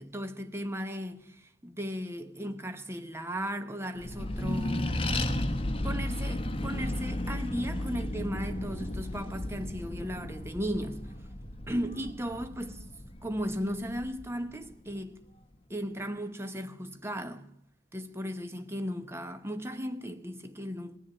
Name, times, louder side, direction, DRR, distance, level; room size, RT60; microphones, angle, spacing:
voice 1, 0.0-5.0 5.8-11.1 11.7-12.8 13.2-15.2 15.7-17.5 17.9-21.0, equal, 15° right, 1.0 m, -36 dB
Accelerating revving vroom, 4.0-14.9, left 1 dB, 30° left, 1.1 m, -34 dB
20.0 x 7.3 x 9.9 m
head